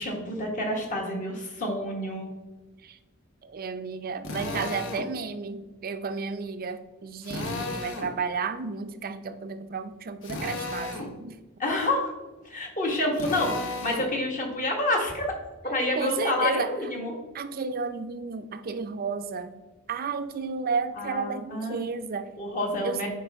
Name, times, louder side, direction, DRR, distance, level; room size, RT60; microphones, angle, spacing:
voice 1, 0.0-2.3 11.6-12.1 12.4-15.3 15.6-17.1 21.0-21.8 22.4-23.1, left 1 dB, 40° left, 1.6 m, -28 dB
voice 2, 3.4-11.4 15.9-16.7 17.3-19.6 19.9-22.3 22.8-23.1, right 5 dB, 45° right, 0.5 m, -32 dB
Drill, 4.2-5.1 7.2-8.1 10.2-11.1 13.1-14.1, left 2 dB, 60° left, 1.0 m, -33 dB
9.2 x 4.6 x 3.5 m
head